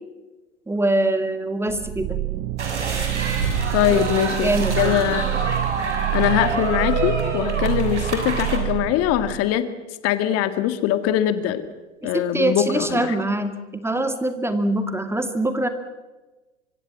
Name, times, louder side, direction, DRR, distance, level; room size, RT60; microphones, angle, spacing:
voice 1, 0.7-2.2 3.9-4.0 4.4-5.0 12.0-15.7, right 1 dB, 5° right, 9 dB, 2.2 m, -24 dB
sound 1, 1.7-9.5, right 17 dB, 35° right, 0.9 m, -27 dB
sound 2, 2.6-8.6, right 3 dB, 80° right, 6.6 m, -27 dB
voice 2, 3.7-5.3 6.1-9.7 10.0-11.7 12.0-13.2, left 11 dB, 45° left, 11 dB, 2.0 m, -22 dB
25.0 x 25.0 x 7.6 m, 1.2 s
figure-of-eight pair, 90°, 35 cm